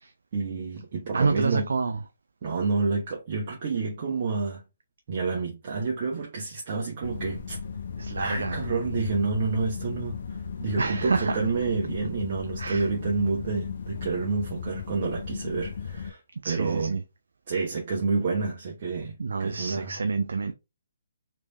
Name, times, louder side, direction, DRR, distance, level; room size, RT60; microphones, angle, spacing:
voice 1, 0.3-1.6 2.4-4.6 5.1-7.6 8.1-16.2 16.4-17.0 17.5-20.0, right 4 dB, 45° right, 1.0 m, -29 dB
voice 2, 1.1-2.0 8.0-8.6 10.8-11.3 12.6-12.9 16.4-17.0 19.2-20.5, right 4 dB, 70° right, 0.4 m, -28 dB
sound 1, 7.0-16.1, left 6 dB, 60° left, 0.5 m, -36 dB
3.2 x 3.2 x 3.0 m
figure-of-eight pair, 140°, 0 cm